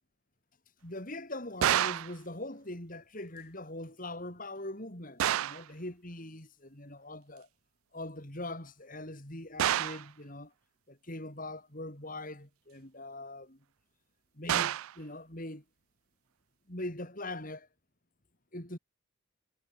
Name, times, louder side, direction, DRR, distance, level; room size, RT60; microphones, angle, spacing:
voice 1, 0.8-7.5 7.9-10.5 10.9-13.6 14.3-15.6 16.7-17.7 18.5-18.8, left 1 dB, 40° left, 5.0 m, -42 dB
sound 1, 1.6-2.2 5.2-5.7 9.6-10.1 14.5-15.0, right 11 dB, 85° right, 0.3 m, -28 dB
head